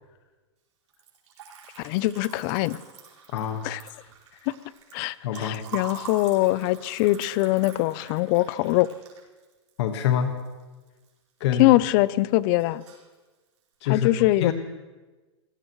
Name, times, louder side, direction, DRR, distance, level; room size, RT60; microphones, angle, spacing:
Liquid, 0.9-11.1 11.4-12.1 12.3-13.1, right 7 dB, 80° right, 4.9 m, -45 dB
voice 1, 1.8-2.8 3.6-3.8 4.5-4.6 4.9-8.9 11.6-12.8 13.9-14.5, left 18 dB, 45° left, 19 dB, 0.6 m, -22 dB
voice 2, 3.3-3.7 5.2-5.6 9.8-10.4 11.4-11.8 13.8-14.5, left 9 dB, 65° left, 6 dB, 1.6 m, -25 dB
25.0 x 17.5 x 3.2 m, 1.2 s
hypercardioid pair, 130°, 15 cm